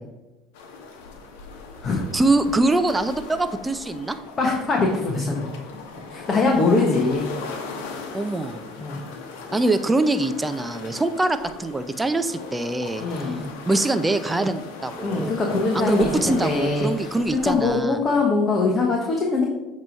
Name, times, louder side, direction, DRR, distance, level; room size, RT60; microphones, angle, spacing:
sound 1, 0.5-17.8, left 4 dB, 80° left, 1.0 m, -38 dB
voice 1, 2.1-4.2 8.1-8.6 9.5-13.0 13.6-15.3 15.7-18.0, right 2 dB, 15° right, 10 dB, 0.5 m, -23 dB
voice 2, 4.4-5.6 6.1-7.3 8.8-9.0 13.0-13.4 15.0-16.9 17.3-19.4, left 3 dB, 35° left, 1 dB, 1.1 m, -22 dB
7.4 x 3.1 x 5.3 m, 1.1 s
supercardioid pair, 90°, 0 cm